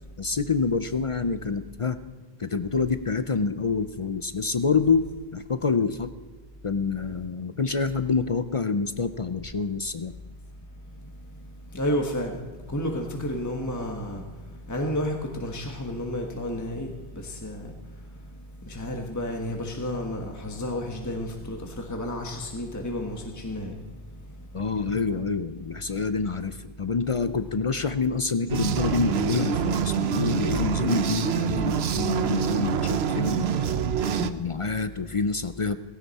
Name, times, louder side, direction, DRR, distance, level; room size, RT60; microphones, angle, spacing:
voice 1, 0.2-2.0 2.4-5.0 5.3-6.1 6.6-10.1 24.5-33.5 34.2-35.8, left 4 dB, 40° left, 11 dB, 0.5 m, -27 dB
voice 2, 11.7-12.4 12.7-14.2 14.7-17.7 18.7-23.7, left 1 dB, 15° left, 2 dB, 1.3 m, -31 dB
sound 1, 28.5-34.3, right 8 dB, 75° right, 1.0 m, -26 dB
17.5 x 16.5 x 4.2 m, 1.4 s
omnidirectional pair, 1.1 m